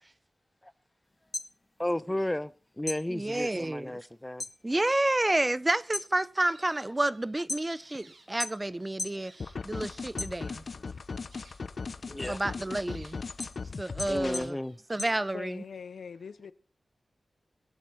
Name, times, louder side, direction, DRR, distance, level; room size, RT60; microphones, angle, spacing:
sound 1, 1.1-2.5 2.8-4.6 5.0-5.4 5.8-8.0 8.4-9.3 9.6-10.8 11.3-15.8, left 2 dB, 35° left, 1.4 m, -39 dB
voice 1, 1.8-2.5 2.8-4.4 12.1-12.4 14.1-14.8, left 1 dB, 15° left, 0.9 m, -33 dB
voice 2, 3.1-3.9 4.6-10.6 12.3-13.2 13.8-14.6 14.9-15.6, right 1 dB, 25° right, 0.8 m, -30 dB
sound 2, 6.4-7.4 7.7-8.7 9.2-10.2 10.7-10.8 11.3-11.5 12.2-13.4 13.7-13.8 14.3-15.4, right 3 dB, 70° right, 6.2 m, -57 dB
sound 3, 9.4-14.5, left 4 dB, 65° left, 1.0 m, -38 dB
voice 3, 15.3-16.5, left 6 dB, 90° left, 1.0 m, -42 dB
24.5 x 8.4 x 4.3 m
cardioid pair, 65°, 0 cm